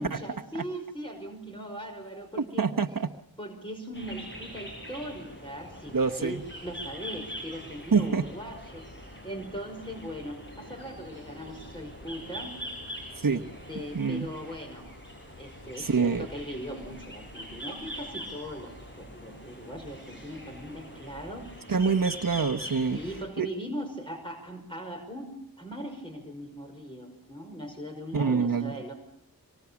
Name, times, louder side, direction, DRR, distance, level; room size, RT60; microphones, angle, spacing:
voice 1, 0.0-2.7 3.4-12.5 13.2-14.9 15.4-21.5 22.9-25.3 25.6-28.9, equal, 15° left, 2 dB, 5.6 m, -40 dB
voice 2, 2.6-3.1 5.9-6.4 7.9-8.2 13.2-13.4 13.9-14.3 15.8-16.3 21.7-23.0 23.4-23.5 28.1-28.7, right 5 dB, 60° right, 4 dB, 1.2 m, -26 dB
sound 1, 3.9-23.2, equal, 30° left, 7.3 m, -43 dB
26.0 x 24.5 x 7.2 m, 0.75 s
wide cardioid pair, 60°, 37 cm